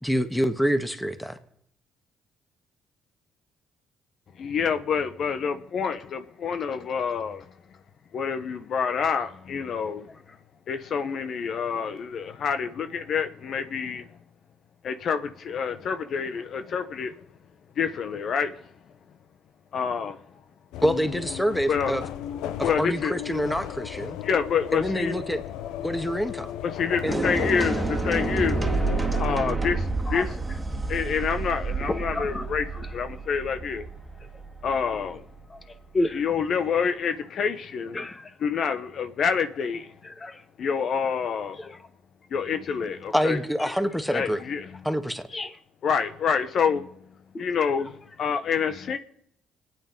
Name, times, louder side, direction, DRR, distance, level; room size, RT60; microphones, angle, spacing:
voice 1, 0.0-1.4 20.8-22.0 22.6-24.2 24.7-25.4 25.8-26.5 27.0-27.3 43.1-44.4 44.8-45.2, equal, 5° left, 1.8 m, -26 dB
voice 2, 4.4-7.4 8.1-10.1 10.7-14.0 14.8-17.1 17.8-18.6 19.7-20.2 21.7-21.9 22.6-23.1 24.2-25.2 26.6-28.6 29.2-30.4 30.9-32.6 32.9-33.8 34.6-35.2 36.1-38.0 38.4-39.9 40.6-41.6 42.3-43.4 44.1-44.7 45.8-46.9 47.4-49.0, left 6 dB, 60° left, 1.1 m, -27 dB
sound 1, 20.7-29.4, left 11 dB, 80° left, 0.7 m, -35 dB
sound 2, 27.0-35.1, right 3 dB, 20° right, 2.0 m, -29 dB
voice 3, 31.8-32.5 35.5-35.6 35.9-36.2 37.9-38.3 40.0-40.4 41.6-41.8 45.3-45.5 47.3-47.7, left 2 dB, 30° left, 2.0 m, -31 dB
25.5 x 9.5 x 5.5 m
supercardioid pair, 60°, 0 cm